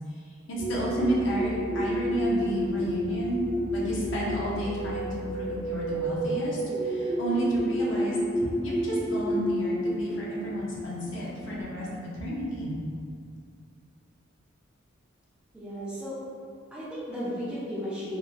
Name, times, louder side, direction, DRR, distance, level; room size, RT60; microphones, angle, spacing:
voice 1, 0.5-3.4 3.7-12.8, right 1 dB, 65° left, -6 dB, 0.6 m, -31 dB
sound 1, 0.6-11.6, equal, 80° right, 0.8 m, -30 dB
voice 2, 15.5-16.2 16.7-18.2, equal, 5° right, -10 dB, 0.4 m, -34 dB
2.8 x 2.1 x 2.6 m, 2.3 s
head